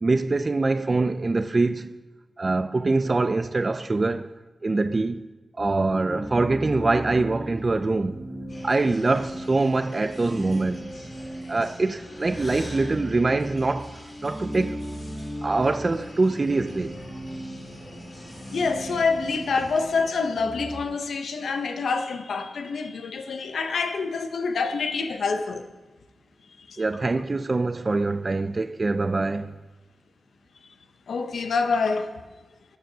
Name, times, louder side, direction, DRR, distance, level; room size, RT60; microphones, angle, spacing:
voice 1, 0.0-2.0 2.4-4.3 4.6-5.2 5.6-8.3 8.6-10.9 11.5-13.9 14.2-14.8 15.4-17.0 26.8-29.5, right 3 dB, 30° right, 0.3 m, -24 dB
sound 1, 5.6-20.9, equal, 5° left, 0.7 m, -37 dB
sound 2, 8.5-19.9, left 1 dB, 40° left, 2.0 m, -45 dB
voice 2, 18.5-25.7 26.6-26.8 31.1-32.1, left 4 dB, 80° left, 0.6 m, -26 dB
12.5 x 6.9 x 2.7 m
wide cardioid pair, 170°, 0 cm